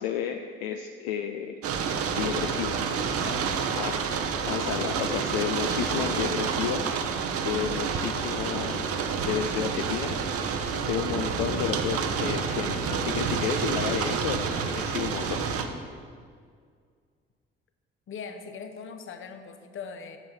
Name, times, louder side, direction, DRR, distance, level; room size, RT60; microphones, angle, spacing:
voice 1, 0.0-1.5 2.0-2.8 3.2-3.4 3.8-4.0 4.5-6.8 7.3-10.2 10.7-15.4, left 9 dB, 65° left, 5 dB, 0.5 m, -32 dB
Rain on window, 1.6-15.7, right 6 dB, 50° right, 0.8 m, -29 dB
voice 2, 18.1-20.2, left 6 dB, 45° left, 7 dB, 0.9 m, -40 dB
7.1 x 5.6 x 7.5 m, 2.1 s
figure-of-eight pair, 45°, 30 cm